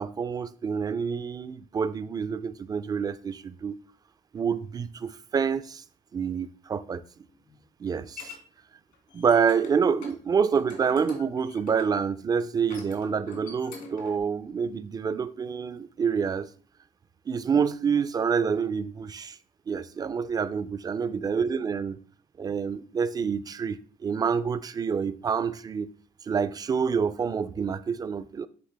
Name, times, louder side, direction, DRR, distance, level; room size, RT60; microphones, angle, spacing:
voice 1, 0.0-3.8 4.3-5.8 6.1-7.0 7.8-8.3 9.1-16.5 17.3-19.4 19.7-22.0 22.4-25.9 26.2-28.5, right 6 dB, 25° right, 0.3 m, -27 dB
sound 1, 7.3-8.4 8.9-9.7 10.0-10.2 10.5-12.0 12.6-14.2, left 4 dB, 80° left, 2.1 m, -45 dB
9.5 x 3.6 x 3.3 m
cardioid pair, 125°, 14 cm